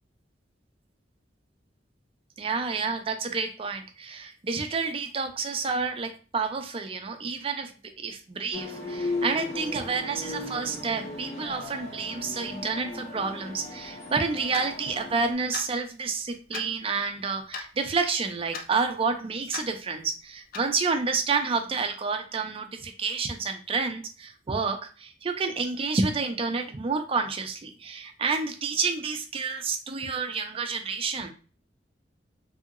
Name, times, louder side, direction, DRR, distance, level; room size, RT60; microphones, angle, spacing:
voice 1, 2.4-31.3, right 4 dB, 30° right, 6 dB, 0.4 m, -29 dB
sound 1, 8.5-15.3, left 2 dB, 35° left, 1.1 m, -36 dB
Clock, 14.5-14.7 15.5-15.7 16.5-16.7 17.5-17.7 18.5-18.7 19.5-19.7 20.5-20.7, left 5 dB, 55° left, 0.4 m, -36 dB
2.7 x 2.7 x 2.4 m, 0.37 s
head